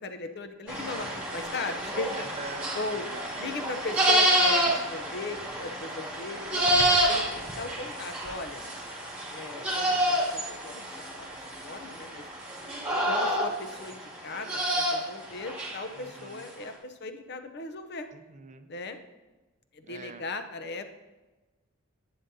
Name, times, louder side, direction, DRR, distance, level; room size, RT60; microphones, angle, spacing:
voice 1, 0.0-2.3 2.7-3.0 3.4-8.6 9.3-10.8 11.1-11.3 11.6-12.2 12.9-18.1 18.7-19.0 19.7-20.8, left 3 dB, 55° left, 8 dB, 0.7 m, -38 dB
sound 1, 0.7-15.9, right 1 dB, 5° right, 2.4 m, -28 dB
voice 2, 2.2-2.7 3.0-3.1 16.0-16.4 18.1-18.7 19.8-20.2, right 4 dB, 35° right, 9 dB, 0.6 m, -44 dB
11.0 x 8.7 x 2.8 m, 1.2 s
head